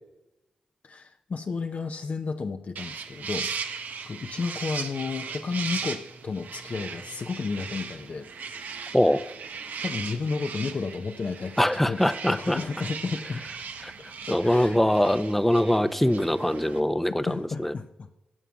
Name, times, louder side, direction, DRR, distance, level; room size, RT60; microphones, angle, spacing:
voice 1, 0.8-8.3 9.8-12.0 12.2-13.4 14.0-14.8 17.1-18.1, left 4 dB, 55° left, 5 dB, 0.8 m, -32 dB
sound 1, 2.8-16.8, right 5 dB, 70° right, 1.0 m, -38 dB
voice 2, 11.6-12.6 13.8-13.9 14.3-17.7, left 1 dB, 5° left, 13 dB, 0.8 m, -23 dB
16.5 x 5.6 x 6.3 m, 0.95 s
supercardioid pair, 40°, 3 cm